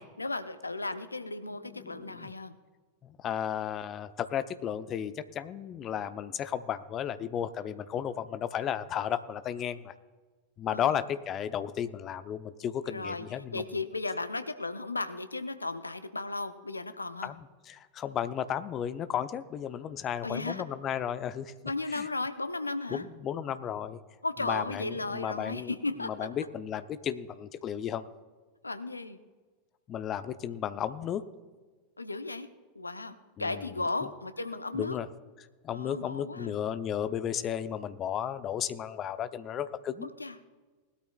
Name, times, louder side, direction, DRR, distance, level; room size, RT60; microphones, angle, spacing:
voice 1, 0.0-2.5 10.7-11.0 12.9-13.3 13.5-17.3 20.2-20.6 21.6-23.0 24.2-26.3 28.6-29.2 32.0-32.5 32.7-34.9 35.7-36.5 40.0-40.4, left 3 dB, 80° left, 10 dB, 0.7 m, -35 dB
voice 2, 1.5-2.3 3.0-9.9 10.6-13.7 17.2-21.5 21.9-22.1 22.9-24.0 24.4-25.7 26.0-28.0 29.9-31.2 33.4-33.8 34.0-34.1 34.7-35.1 35.6-40.1, left 9 dB, 30° left, 12 dB, 0.7 m, -34 dB
20.0 x 12.5 x 2.3 m, 1.3 s
figure-of-eight pair, 90°, 0 cm